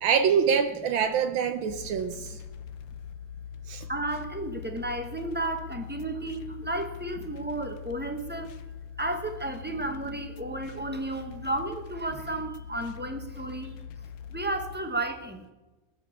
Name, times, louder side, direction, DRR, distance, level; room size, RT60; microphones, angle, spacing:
voice 1, 0.0-2.4 3.7-3.9, right 7 dB, 80° right, 6 dB, 1.6 m, -25 dB
voice 2, 1.6-2.3 3.9-8.5 9.0-13.8 14.3-15.5, right 2 dB, 10° right, 5 dB, 0.6 m, -33 dB
sound 1, 1.7-14.8, left 8 dB, 80° left, 1.4 m, -42 dB
20.5 x 6.9 x 7.0 m, 1.1 s
omnidirectional pair, 2.1 m